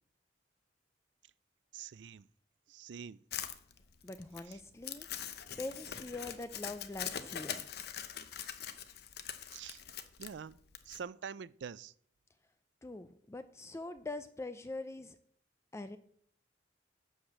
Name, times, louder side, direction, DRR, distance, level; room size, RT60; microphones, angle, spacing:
voice 1, 1.7-2.3 2.7-3.2 4.5-4.6 9.5-9.8 10.2-10.6 10.9-11.9, right 7 dB, 70° right, 0.4 m, -45 dB
Crumpling crinkling, 3.3-11.0, left 9 dB, 60° left, 0.8 m, -43 dB
voice 2, 4.0-5.1 5.6-7.7 12.8-15.2 15.7-16.0, left 2 dB, 15° left, 0.4 m, -43 dB
11.5 x 5.0 x 7.3 m
head